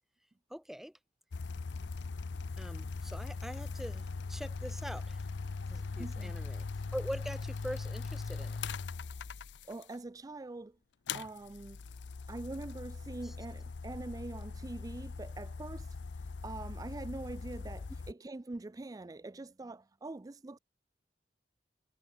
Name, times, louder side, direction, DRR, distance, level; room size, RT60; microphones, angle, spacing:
voice 1, 0.5-0.9 2.6-5.2 5.7-6.7 6.9-8.6 13.2-13.3, equal, ahead, 0.9 m, -43 dB
sound 1, 1.3-9.9 11.1-18.1, left 4 dB, 80° left, 0.6 m, -40 dB
voice 2, 6.0-6.4 9.7-10.8 11.1-11.8 12.3-20.6, right 2 dB, 20° right, 0.4 m, -44 dB
head